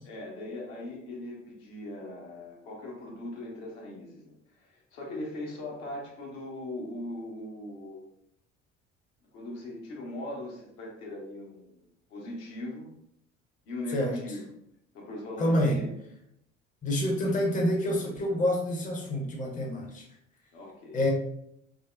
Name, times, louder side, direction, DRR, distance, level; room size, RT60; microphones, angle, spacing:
voice 1, 0.1-8.1 9.3-12.9 13.7-14.4 14.9-15.9 20.5-21.0, left 1 dB, 65° left, -2 dB, 0.9 m, -40 dB
voice 2, 13.9-14.2 15.4-15.8 16.8-20.0 20.9-21.1, left 1 dB, 20° left, 1 dB, 0.6 m, -27 dB
3.6 x 2.0 x 2.3 m, 0.77 s
figure-of-eight pair, 55°, 37 cm